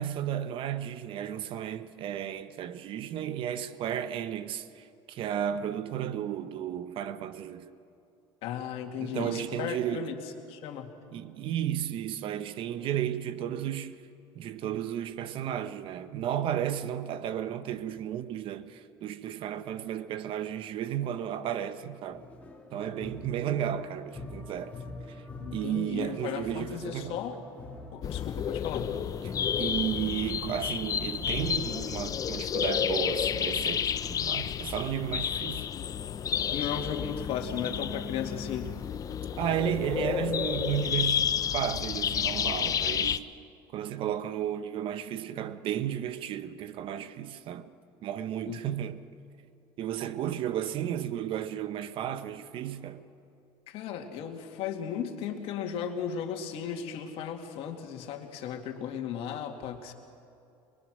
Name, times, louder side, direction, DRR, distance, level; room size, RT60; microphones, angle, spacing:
voice 1, 0.0-7.7 9.0-10.1 11.1-14.0 14.3-22.2 22.7-24.8 25.1-25.2 25.5-27.2 29.2-35.7 39.4-43.3 43.7-47.7 48.0-49.0 49.8-53.0, right 10 dB, 50° right, 0.9 m, -33 dB
voice 2, 8.4-10.2 10.5-10.9 25.4-27.4 27.9-28.9 36.5-38.7 48.5-48.6 53.7-59.9, left 8 dB, 60° left, 2.3 m, -35 dB
sound 1, 22.1-32.0, left 3 dB, 15° left, 3.1 m, -45 dB
sound 2, 28.0-43.2, left 8 dB, 35° left, 0.6 m, -31 dB
22.5 x 22.0 x 6.3 m
cardioid pair, 125°, 11 cm